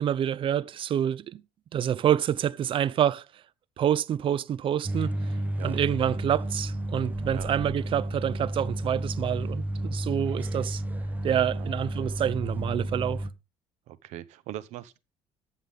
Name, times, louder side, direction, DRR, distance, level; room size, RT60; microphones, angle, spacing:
voice 1, 0.0-1.4 1.7-3.2 3.8-5.1 5.6-10.8 11.2-13.2, right 10 dB, 50° right, 0.5 m, -27 dB
sound 1, 4.8-13.3, right 1 dB, 15° right, 1.0 m, -32 dB
voice 2, 13.9-15.0, right 13 dB, 75° right, 0.9 m, -41 dB
14.0 x 7.2 x 3.6 m
cardioid pair, 105°, 12 cm